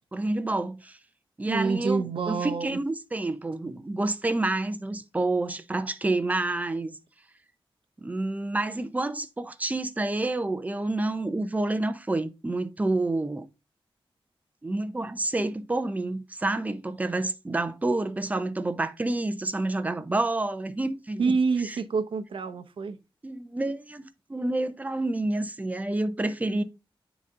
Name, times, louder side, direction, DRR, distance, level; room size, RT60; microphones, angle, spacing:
voice 1, 0.1-1.0 1.4-7.0 8.0-13.4 14.6-21.4 21.6-21.8 23.2-26.6, right 2 dB, 15° right, 0.6 m, -28 dB
voice 2, 1.5-2.8 21.2-23.0, right 4 dB, 70° right, 0.7 m, -27 dB
9.0 x 4.0 x 3.7 m
wide cardioid pair, 175°, 9 cm